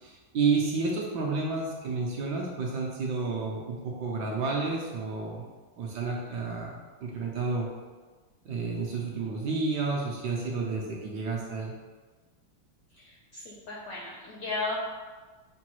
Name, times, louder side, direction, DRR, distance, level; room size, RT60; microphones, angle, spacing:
voice 1, 0.0-5.4 5.8-6.7 7.0-7.7 8.4-11.7, right 4 dB, 75° right, -2 dB, 1.1 m, -30 dB
voice 2, 12.9-14.8, left 3 dB, 80° left, -4 dB, 0.8 m, -35 dB
6.0 x 2.2 x 2.9 m, 1.4 s
omnidirectional pair, 2.2 m